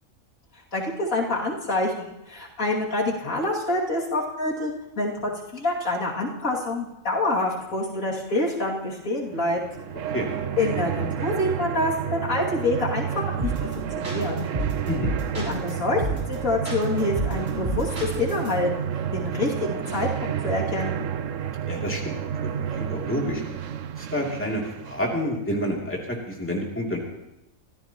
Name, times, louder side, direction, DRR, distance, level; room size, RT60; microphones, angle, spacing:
voice 1, 0.7-4.7 5.0-9.6 10.6-14.4 15.3-21.1, left 2 dB, 80° left, -3 dB, 3.0 m, -27 dB
sound 1, 9.4-25.1, right 9 dB, 70° right, 1.1 m, -30 dB
sound 2, 13.4-13.7 14.0-15.7 16.0-16.3 16.6-18.5, right 2 dB, 35° right, 3.2 m, -29 dB
voice 2, 21.7-22.2 22.4-23.4 24.1-27.0, equal, 10° left, -2 dB, 2.7 m, -28 dB
25.0 x 15.0 x 3.0 m, 0.90 s
omnidirectional pair, 1.4 m